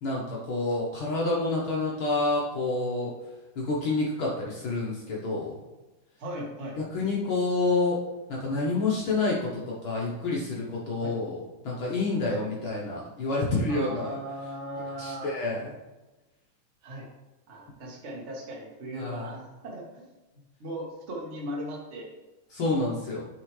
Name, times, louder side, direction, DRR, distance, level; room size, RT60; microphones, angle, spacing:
voice 1, 0.0-3.1 3.5-5.6 6.8-8.0 8.3-14.2 15.0-15.7 18.9-19.4 22.5-23.3, left 3 dB, 70° left, -4 dB, 1.2 m, -28 dB
voice 2, 6.2-6.8 11.0-11.1 12.3-12.4 13.7-15.3 16.8-17.1 17.5-20.0 20.6-22.1, right 1 dB, 70° right, -2 dB, 0.6 m, -38 dB
8.1 x 5.0 x 3.2 m, 1.1 s
omnidirectional pair, 3.8 m